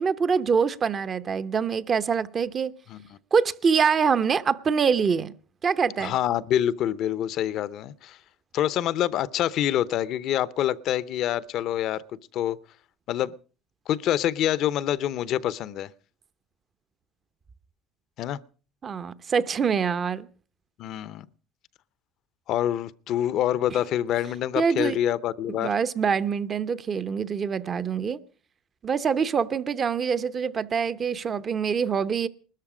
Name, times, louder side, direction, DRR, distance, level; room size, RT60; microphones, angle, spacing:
voice 1, 0.0-2.7 3.3-5.3 5.6-6.2 18.8-20.3 24.6-25.0 25.6-28.2 28.8-32.3, right 6 dB, 30° right, 0.7 m, -25 dB
voice 2, 6.0-8.2 8.5-12.0 12.3-12.6 13.1-13.3 13.9-15.9 18.2-18.4 20.8-21.3 22.5-25.7, left 11 dB, 55° left, 0.7 m, -26 dB
19.5 x 13.5 x 5.0 m
cardioid pair, 125°, 0 cm